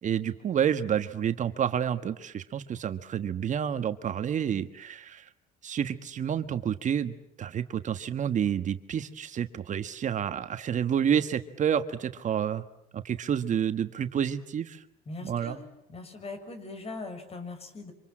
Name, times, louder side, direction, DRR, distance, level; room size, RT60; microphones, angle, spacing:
voice 1, 0.0-5.3 5.6-12.6 12.9-14.8 15.2-15.6, right 8 dB, 45° right, 10 dB, 1.4 m, -29 dB
voice 2, 15.1-15.6 15.9-17.9, left 3 dB, 35° left, 8 dB, 6.2 m, -40 dB
27.5 x 26.0 x 7.6 m, 0.77 s
cardioid pair, 110°, 17 cm